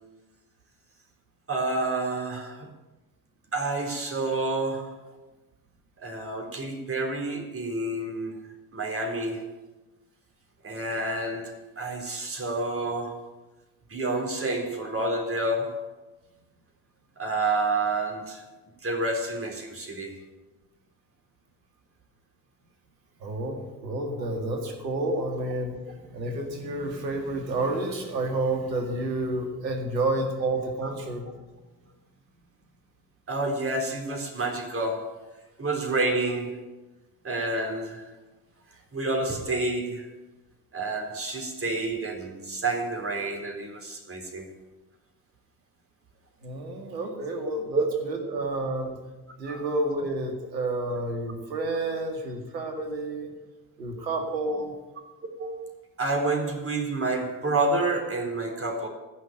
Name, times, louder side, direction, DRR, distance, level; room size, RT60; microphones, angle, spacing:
voice 1, 1.5-2.7 3.5-5.0 6.0-8.3 8.7-9.5 10.6-13.3 13.9-15.9 17.2-18.5 18.8-20.2 33.3-35.1 35.6-36.7 37.2-38.1 38.9-40.1 40.7-44.4 47.7-47.9 48.2-48.3 49.4-49.7 52.8-52.9 54.0-54.1 55.4-55.6 56.0-58.9, right 2 dB, 25° right, 1 dB, 3.8 m, -29 dB
voice 2, 23.2-31.3 46.4-49.0 49.4-53.3 53.8-54.7, right 2 dB, 85° right, 3 dB, 2.1 m, -30 dB
15.0 x 6.4 x 9.0 m, 1.1 s
hypercardioid pair, 55°, 49 cm